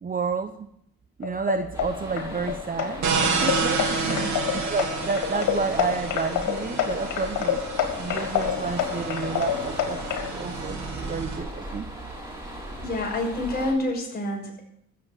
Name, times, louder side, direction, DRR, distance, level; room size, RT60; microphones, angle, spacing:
voice 1, 0.0-0.7 1.2-3.0 3.4-7.6 8.0-10.0 10.3-11.9, right 5 dB, 30° right, 9 dB, 0.8 m, -30 dB
sound 1, 1.2-10.3, left 10 dB, 85° left, 2.1 m, -29 dB
sound 2, 1.7-13.7, right 1 dB, 10° right, 5.6 m, -38 dB
sound 3, 3.0-11.4, right 4 dB, 65° right, 3.6 m, -30 dB
voice 2, 12.8-14.6, left 1 dB, 30° left, -1 dB, 5.9 m, -28 dB
15.5 x 7.3 x 7.4 m, 0.73 s
cardioid pair, 90°, 30 cm